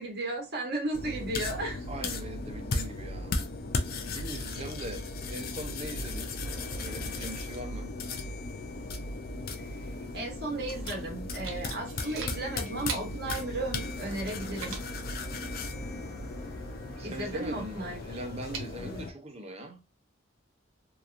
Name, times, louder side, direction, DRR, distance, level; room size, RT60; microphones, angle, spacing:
voice 1, 0.0-1.9 4.1-4.3 9.5-9.6 10.1-14.7 17.0-18.1, right 2 dB, 55° right, 1.1 m, -35 dB
sound 1, 0.9-19.1, left 2 dB, 45° left, 0.4 m, -36 dB
voice 2, 1.9-3.3 4.1-6.3 6.8-7.9 16.9-19.8, right 1 dB, 30° right, 0.5 m, -41 dB
sound 2, 6.4-8.5 13.6-19.2, left 1 dB, ahead, 0.7 m, -47 dB
moving small box, 9.5-19.0, right 5 dB, 85° right, 0.6 m, -46 dB
2.8 x 2.2 x 2.5 m
head